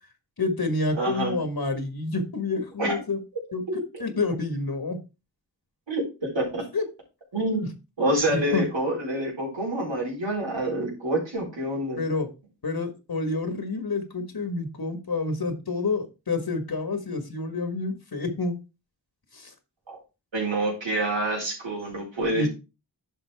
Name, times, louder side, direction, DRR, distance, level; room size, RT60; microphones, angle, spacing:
voice 1, 0.4-3.2 3.5-3.6 4.0-5.0 6.7-6.8 8.3-8.6 12.0-12.3 12.6-18.5 19.3-19.5 22.3-22.5, left 3 dB, 55° left, 7 dB, 1.7 m, -28 dB
voice 2, 0.9-1.3 2.8-3.0 3.7-3.8 5.9-6.6 7.3-7.6 8.0-12.0 19.9-20.0 20.3-22.5, right 1 dB, 90° right, -2 dB, 4.2 m, -27 dB
10.5 x 5.6 x 3.5 m, 0.28 s
cardioid pair, 50°, 44 cm